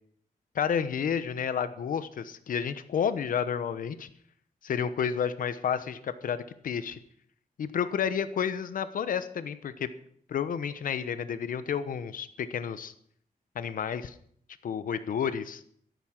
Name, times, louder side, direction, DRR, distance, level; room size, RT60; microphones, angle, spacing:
voice 1, 0.5-4.1 4.6-7.0 7.6-9.9 10.3-12.9 13.5-14.1 14.6-15.6, left 7 dB, 75° left, 12 dB, 1.0 m, -31 dB
12.5 x 11.5 x 6.0 m, 0.64 s
wide cardioid pair, 145°, 14 cm